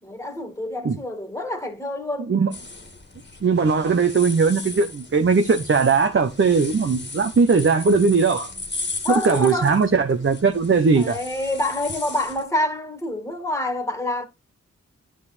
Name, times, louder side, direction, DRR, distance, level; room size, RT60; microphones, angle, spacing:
voice 1, 0.0-2.4 9.0-9.8 11.0-14.2, left 1 dB, 10° left, 2.1 m, -27 dB
sound 1, 2.5-12.4, left 3 dB, 35° left, 2.1 m, -37 dB
voice 2, 3.4-8.5 9.2-11.2, right 5 dB, 45° right, 1.0 m, -19 dB
9.8 x 4.7 x 4.3 m
cardioid pair, 55°, 30 cm